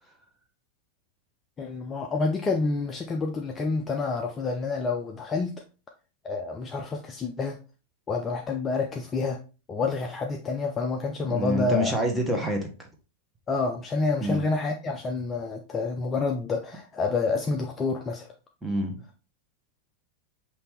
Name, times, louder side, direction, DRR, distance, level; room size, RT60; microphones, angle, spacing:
voice 1, 1.6-5.5 6.2-7.6 8.1-9.4 9.7-12.0 13.5-18.3, left 3 dB, 20° left, 0.5 m, -28 dB
voice 2, 11.2-12.9 14.2-14.4 18.6-18.9, equal, 5° right, 1.1 m, -27 dB
5.7 x 2.8 x 3.3 m
figure-of-eight pair, 90°, 0 cm